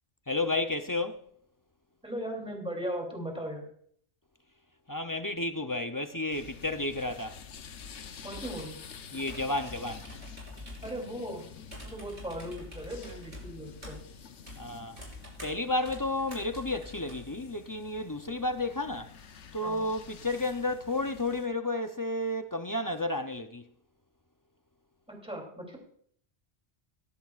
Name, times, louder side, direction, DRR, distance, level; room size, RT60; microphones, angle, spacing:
voice 1, 0.3-1.3 4.9-7.4 9.1-10.0 14.6-15.0 15.4-19.1 19.5-23.7, left 2 dB, 25° left, 0.4 m, -32 dB
voice 2, 2.0-3.7 8.2-8.8 10.8-11.5 11.8-14.0 19.6-19.9 25.1-25.8, equal, 5° right, 3.0 m, -38 dB
sound 1, 6.3-21.5, left 6 dB, 90° left, 1.1 m, -49 dB
sound 2, 8.2-17.2, left 1 dB, 40° right, 4.3 m, -47 dB
17.0 x 14.0 x 2.4 m
omnidirectional pair, 1.1 m